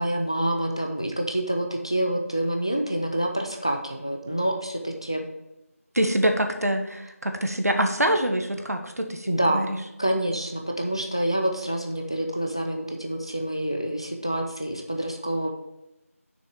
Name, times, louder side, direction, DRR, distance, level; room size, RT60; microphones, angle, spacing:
voice 1, 0.0-5.2 9.3-9.6 10.0-15.5, right 1 dB, 20° left, 4 dB, 0.5 m, -27 dB
voice 2, 5.9-9.7, right 1 dB, 85° right, 5 dB, 1.4 m, -25 dB
6.8 x 6.4 x 4.6 m, 0.90 s
figure-of-eight pair, 180°, 8 cm